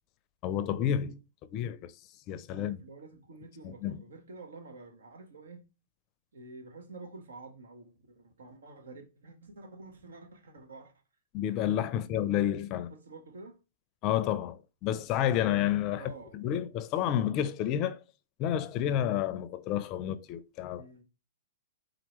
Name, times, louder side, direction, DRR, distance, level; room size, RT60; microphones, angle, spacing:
voice 1, 0.4-1.2 1.5-1.9 2.3-2.8 3.6-4.0 11.3-12.9 14.0-18.0 18.4-20.8, left 10 dB, 35° left, 0.5 m, -30 dB
voice 2, 2.5-5.7 6.3-10.9 12.9-13.6 15.9-16.5 20.7-21.0, right 3 dB, 80° right, 1.3 m, -49 dB
4.5 x 3.9 x 3.0 m
hypercardioid pair, 120°, 0 cm